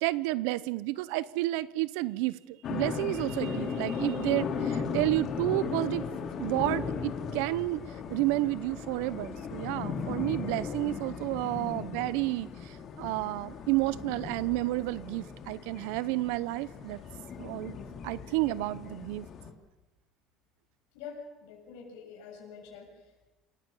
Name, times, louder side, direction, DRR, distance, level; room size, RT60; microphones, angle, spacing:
voice 1, 0.0-6.0 6.4-7.8 8.1-17.0 17.4-17.8 18.0-19.3, right 18 dB, 85° right, 18 dB, 0.9 m, -31 dB
sound 1, 2.6-19.5, left 6 dB, 45° left, 2.9 m, -37 dB
voice 2, 20.9-23.3, left 6 dB, 90° left, -2 dB, 7.7 m, -46 dB
28.0 x 17.0 x 7.3 m, 1.1 s
cardioid pair, 135°, 0 cm